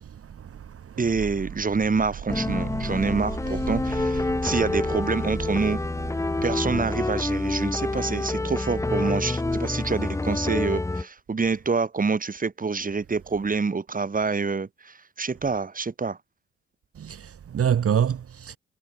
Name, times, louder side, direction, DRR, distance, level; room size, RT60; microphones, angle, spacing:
voice 1, 0.0-1.0 2.8-2.9 4.3-4.6 6.3-6.4 16.9-18.6, right 8 dB, 50° right, 1.7 m, -28 dB
voice 2, 1.0-5.8 6.4-16.2, right 4 dB, 25° right, 3.0 m, -27 dB
sound 1, 2.3-11.1, left 2 dB, 10° left, 0.8 m, -27 dB
cardioid pair, 90°, 30 cm